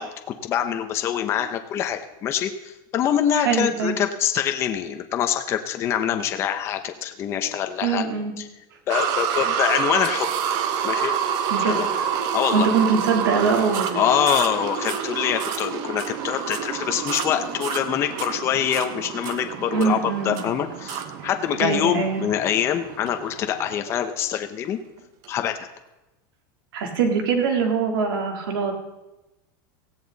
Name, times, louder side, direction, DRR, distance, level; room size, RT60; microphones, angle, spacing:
voice 1, 0.0-8.0 8.4-8.5 8.9-10.3 10.8-11.1 11.6-11.9 12.3-12.7 13.9-20.0 20.2-24.8 25.3-25.7, left 10 dB, 25° left, 7 dB, 0.9 m, -25 dB
voice 2, 3.3-4.0 7.8-8.3 9.3-9.6 11.5-11.8 12.5-14.0 19.7-20.4 21.6-22.2 26.7-28.7, right 5 dB, 90° right, 2 dB, 3.5 m, -23 dB
sound 1, 8.9-24.0 24.6-24.7 25.2-25.3, right 8 dB, 35° right, 1.0 m, -28 dB
17.0 x 16.0 x 4.1 m, 0.98 s
supercardioid pair, 180°, 11 cm